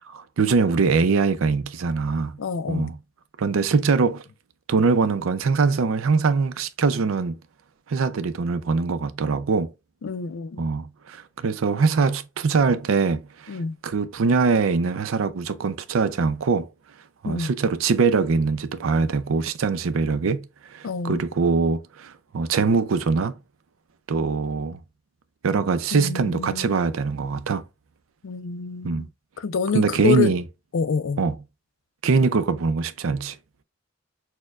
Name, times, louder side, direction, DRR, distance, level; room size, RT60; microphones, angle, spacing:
voice 1, 0.1-2.4 2.7-3.0 3.4-4.2 4.7-7.4 7.9-9.7 10.6-16.7 17.2-23.3 24.1-24.8 25.4-27.6 28.8-29.1 29.7-30.4 31.2-31.4 32.0-33.4, right 4 dB, 90° right, 0.5 m, -23 dB
voice 2, 2.4-2.9 10.0-10.6 13.5-13.8 17.3-17.5 20.8-21.2 25.9-26.8 28.2-29.1 29.4-30.3 30.7-31.2, left 5 dB, 80° left, 0.4 m, -27 dB
6.3 x 2.2 x 2.4 m
head